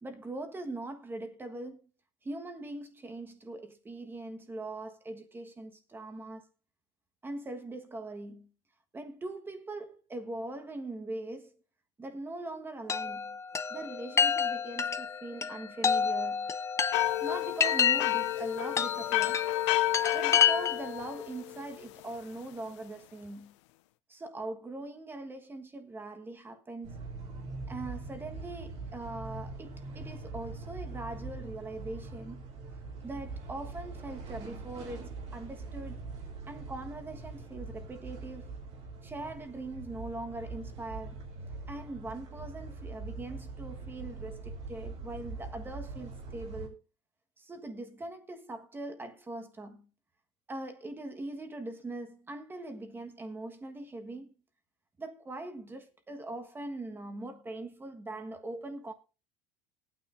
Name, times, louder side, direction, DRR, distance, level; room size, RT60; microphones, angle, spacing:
voice 1, 0.0-1.8 2.2-6.5 7.2-8.5 8.9-11.5 12.0-13.4 13.7-16.5 17.2-19.7 20.1-23.6 24.1-27.0 27.7-32.5 33.0-36.1 36.5-38.5 39.0-41.2 41.7-46.8 47.4-49.9 50.5-54.3 55.0-58.9, right 2 dB, 15° right, 1.5 m, -41 dB
Chime, 12.9-21.0, left 7 dB, 20° left, 0.7 m, -29 dB
sound 1, 16.9-21.8, left 17 dB, 85° left, 0.5 m, -31 dB
sound 2, 26.8-46.7, right 3 dB, 45° right, 3.1 m, -43 dB
18.5 x 9.2 x 2.6 m
supercardioid pair, 130°, 15 cm